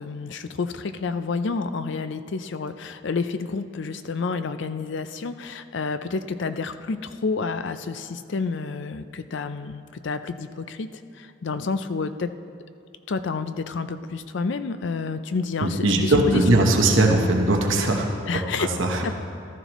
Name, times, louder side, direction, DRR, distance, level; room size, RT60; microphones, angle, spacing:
voice 1, 0.0-12.3 13.1-16.7 18.3-18.7 19.0-19.1, left 4 dB, 65° left, 11 dB, 0.5 m, -29 dB
voice 2, 15.6-18.1 18.6-19.0, right 2 dB, 75° right, 2 dB, 1.1 m, -20 dB
14.0 x 12.5 x 3.0 m, 2.4 s
head